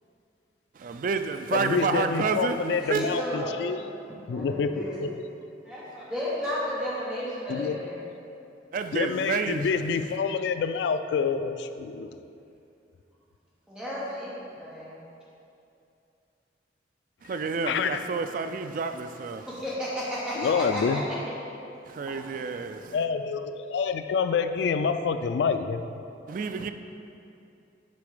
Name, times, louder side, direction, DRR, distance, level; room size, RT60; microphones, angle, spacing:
voice 1, 0.7-3.0 8.7-9.7 17.2-19.5 21.9-23.0 26.3-26.7, right 4 dB, 50° right, 8 dB, 0.3 m, -29 dB
voice 2, 1.5-3.8 4.3-5.3 7.5-7.8 8.9-12.1 17.7-18.0 20.4-21.0 22.9-26.0, left 5 dB, 75° left, 9 dB, 0.3 m, -27 dB
voice 3, 2.8-5.0 5.6-8.0 13.7-15.0 19.5-21.2 22.1-22.2, equal, 5° right, -9 dB, 1.3 m, -33 dB
6.8 x 5.1 x 5.0 m, 2.7 s
head